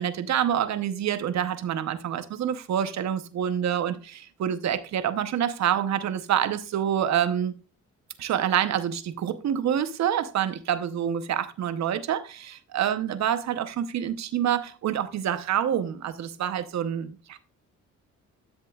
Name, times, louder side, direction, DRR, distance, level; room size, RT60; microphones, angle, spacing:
voice 1, 0.0-7.6 8.2-17.4, right 9 dB, 65° right, 0.9 m, -27 dB
12.5 x 6.7 x 2.3 m
cardioid pair, 90°, 30 cm